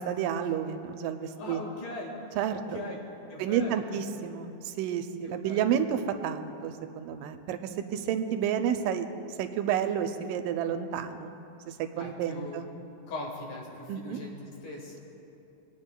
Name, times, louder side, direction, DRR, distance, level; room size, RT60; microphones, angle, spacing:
voice 1, 0.0-1.6 2.4-2.8 3.4-9.1 9.4-11.3 11.7-12.7 13.9-14.2, right 8 dB, 90° right, 8 dB, 2.2 m, -30 dB
voice 2, 1.2-2.1 2.5-3.9 5.2-5.7 12.0-12.6 13.1-15.0, left 2 dB, 80° left, -2 dB, 3.4 m, -41 dB
26.5 x 9.3 x 2.2 m, 2.8 s
omnidirectional pair, 3.7 m